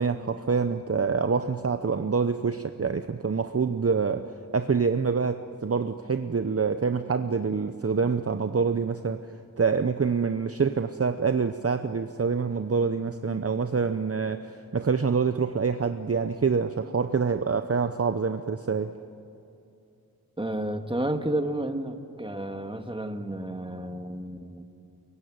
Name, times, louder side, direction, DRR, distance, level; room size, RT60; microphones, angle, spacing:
voice 1, 0.0-9.2 9.6-18.9, right 5 dB, 40° right, 9 dB, 0.7 m, -26 dB
voice 2, 20.4-24.6, right 1 dB, 15° right, 6 dB, 1.7 m, -31 dB
23.0 x 22.5 x 9.5 m, 2.7 s
wide cardioid pair, 70°, 38 cm